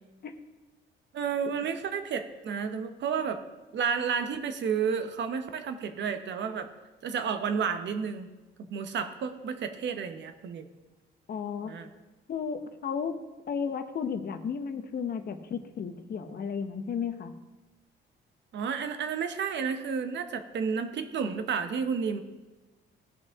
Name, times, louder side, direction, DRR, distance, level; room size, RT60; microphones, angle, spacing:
voice 1, 1.1-3.4 3.7-6.7 7.0-8.3 8.6-10.7 11.6-11.9 18.5-22.2, right 6 dB, 65° right, 8 dB, 0.9 m, -31 dB
voice 2, 11.3-11.7 12.3-13.2 13.5-17.3, left 6 dB, 50° left, 8 dB, 0.8 m, -33 dB
16.0 x 5.4 x 3.5 m, 1.1 s
cardioid pair, 90°, 20 cm